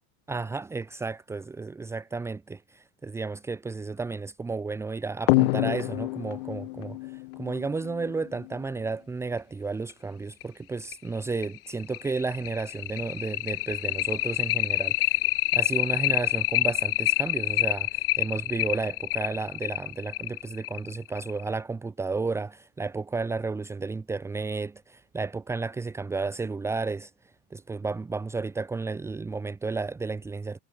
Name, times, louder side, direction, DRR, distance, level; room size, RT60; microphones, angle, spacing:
voice 1, 0.3-15.2 15.5-27.1 27.5-30.6, right 4 dB, 10° right, 1.9 m, -32 dB
sound 1, 5.3-8.4 9.9-10.0 10.4-10.5 10.9-11.0 11.4-21.5, left 25 dB, 55° left, 1.3 m, -27 dB
supercardioid pair, 175°, 34 cm